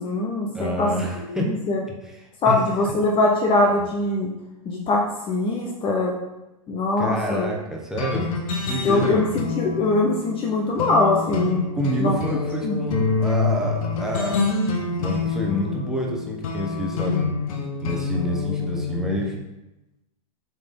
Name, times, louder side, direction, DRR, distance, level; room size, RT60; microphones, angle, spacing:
voice 1, 0.0-0.9 1.2-1.8 2.4-4.3 4.7-6.1 6.7-7.5 8.8-11.6 12.0-12.2 12.6-12.8, left 2 dB, 25° left, -1 dB, 0.9 m, -22 dB
voice 2, 0.5-1.5 2.0-2.6 7.0-8.3 8.6-9.2 11.7-14.5 14.8-17.3 17.8-19.4, equal, 5° right, -2 dB, 1.3 m, -28 dB
sound 1, 8.0-19.3, left 4 dB, 65° left, 1.3 m, -27 dB
7.3 x 3.9 x 3.8 m, 0.99 s
hypercardioid pair, 120°, 19 cm